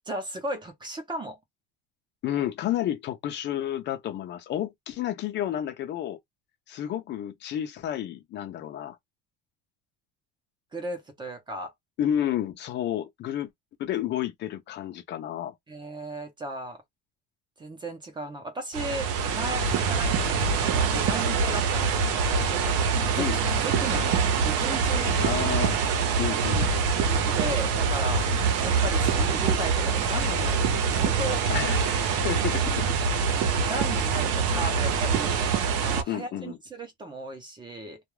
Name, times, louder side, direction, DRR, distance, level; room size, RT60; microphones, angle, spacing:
voice 1, 0.0-1.4 10.7-11.7 15.7-16.8 17.6-22.1 22.3-23.3 23.6-25.4 25.7-25.8 27.0-28.3 28.6-31.5 33.7-38.0, right 1 dB, 15° right, 0.6 m, -36 dB
voice 2, 2.2-6.2 6.7-9.0 12.0-13.5 13.8-15.5 23.2-23.4 25.2-25.7 26.2-26.7 31.5-33.0 36.1-36.6, left 11 dB, 40° left, 0.5 m, -31 dB
sound 1, 18.7-36.0, right 5 dB, 55° right, 0.7 m, -25 dB
2.3 x 2.2 x 3.1 m
cardioid pair, 170°, 29 cm